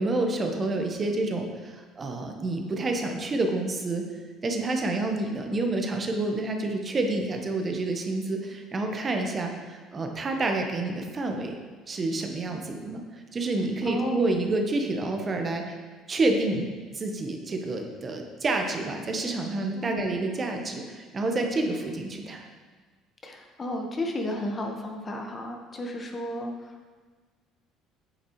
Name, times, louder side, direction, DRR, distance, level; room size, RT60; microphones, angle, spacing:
voice 1, 0.0-4.0 4.4-11.6 11.9-15.8 16.1-16.7 16.9-22.4, right 2 dB, 35° right, 3 dB, 1.2 m, -28 dB
voice 2, 13.8-14.3 19.7-20.1 23.2-26.9, left 1 dB, 35° left, 2 dB, 1.4 m, -33 dB
9.1 x 7.1 x 3.2 m, 1.5 s
hypercardioid pair, 60°, 0 cm